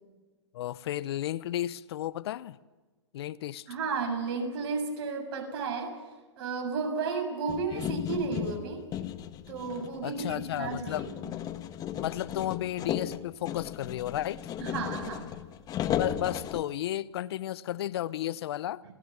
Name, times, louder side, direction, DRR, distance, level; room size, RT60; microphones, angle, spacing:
voice 1, 0.5-2.6 3.1-3.7 7.7-7.8 10.0-11.0 12.0-14.4 16.0-18.8, left 13 dB, 55° left, 0.8 m, -33 dB
voice 2, 3.7-6.0 6.4-8.8 9.5-11.3 14.6-15.3, right 4 dB, 50° right, 7.1 m, -33 dB
sound 1, 7.5-16.6, left 11 dB, 25° left, 1.5 m, -35 dB
28.0 x 20.0 x 7.4 m
hypercardioid pair, 125°, 15 cm